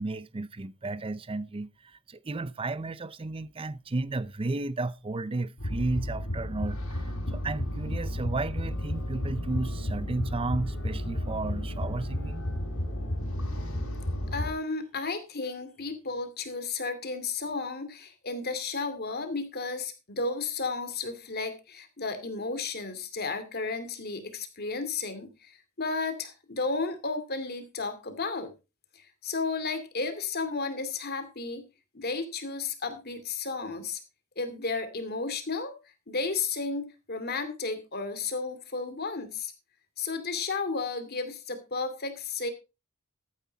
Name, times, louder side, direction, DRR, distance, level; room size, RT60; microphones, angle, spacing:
voice 1, 0.0-12.5, right 2 dB, 25° right, 0.5 m, -33 dB
sound 1, 5.6-14.5, left 1 dB, 75° left, 4.8 m, -32 dB
voice 2, 14.3-28.5 28.9-31.7 31.9-34.0 34.4-35.7 36.1-39.5 40.0-42.5, left 4 dB, 45° left, 2.5 m, -33 dB
14.0 x 9.7 x 4.0 m
head